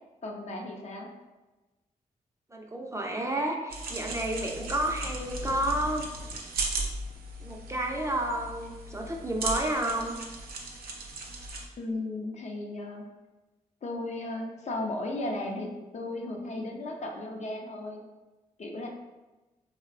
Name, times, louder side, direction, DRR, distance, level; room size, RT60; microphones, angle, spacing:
voice 1, 0.2-1.1 11.8-13.1 13.8-18.0 18.6-18.9, left 2 dB, 50° left, 1 dB, 0.5 m, -35 dB
voice 2, 2.5-6.0 7.4-10.2, right 1 dB, 20° right, 1 dB, 0.4 m, -31 dB
sound 1, 3.7-11.7, right 2 dB, 80° right, 0.4 m, -37 dB
2.5 x 2.0 x 2.5 m, 1.1 s
supercardioid pair, 40°, 15 cm